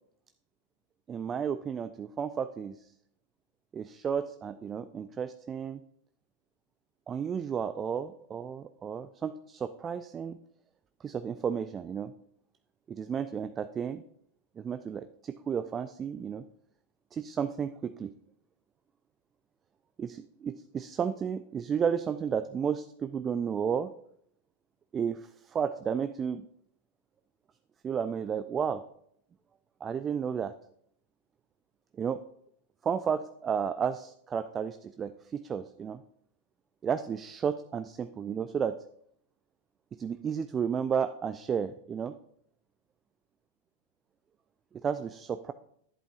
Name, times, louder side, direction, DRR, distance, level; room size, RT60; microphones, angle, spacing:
voice 1, 1.1-2.9 3.7-5.8 7.1-10.4 11.0-12.1 12.9-14.0 14.6-16.4 17.1-18.1 20.0-23.9 24.9-26.5 27.8-28.8 29.8-30.5 32.0-32.2 32.8-36.0 36.8-38.8 39.9-42.2 44.7-45.5, right 7 dB, 25° right, 12 dB, 0.3 m, -32 dB
11.0 x 7.9 x 2.5 m, 0.70 s
figure-of-eight pair, 90°, 0 cm